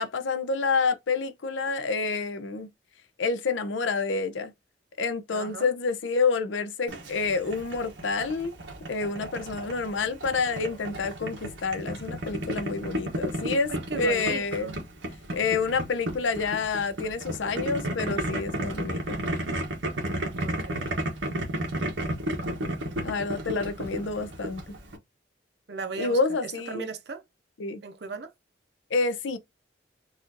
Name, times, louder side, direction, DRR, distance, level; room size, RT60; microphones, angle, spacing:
voice 1, 0.0-2.7 3.2-4.5 5.0-8.5 8.9-14.8 15.3-19.2 23.0-24.6 26.0-26.9 27.6-27.8 28.9-29.4, left 4 dB, 80° left, 0.6 m, -28 dB
voice 2, 5.3-5.7 13.7-14.8 20.4-20.8 25.7-27.2 27.8-28.3, right 4 dB, 60° right, 0.7 m, -37 dB
Boiling, 6.9-25.0, right 1 dB, 75° right, 1.0 m, -33 dB
4.1 x 2.5 x 2.5 m
head